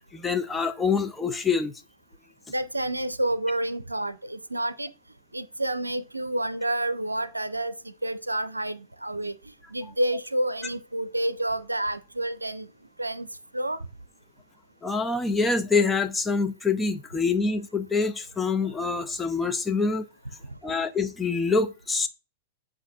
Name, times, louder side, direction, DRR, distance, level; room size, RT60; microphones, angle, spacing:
voice 1, 0.1-1.7 14.8-20.1 20.6-22.1, left 4 dB, 10° left, 0.8 m, -25 dB
voice 2, 2.5-4.9 5.3-12.7 13.0-13.3 13.5-13.8, right 1 dB, 85° right, 0.5 m, -29 dB
8.1 x 2.7 x 6.0 m
figure-of-eight pair, 95°, 0 cm